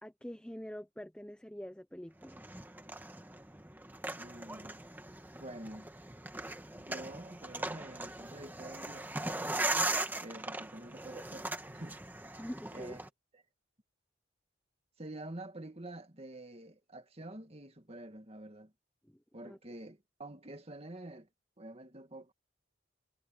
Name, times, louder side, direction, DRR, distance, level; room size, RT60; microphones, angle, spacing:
voice 1, 0.0-2.4 12.4-13.0 19.0-19.1 19.4-19.6, equal, 5° left, 0.7 m, -45 dB
sound 1, 2.2-13.1, right 2 dB, 10° right, 1.4 m, -39 dB
voice 2, 4.2-4.9 5.4-5.9 6.7-12.0 12.3-12.4 12.7-13.1 15.0-18.7 19.3-21.3 21.6-22.3, right 1 dB, 30° right, 2.0 m, -48 dB
head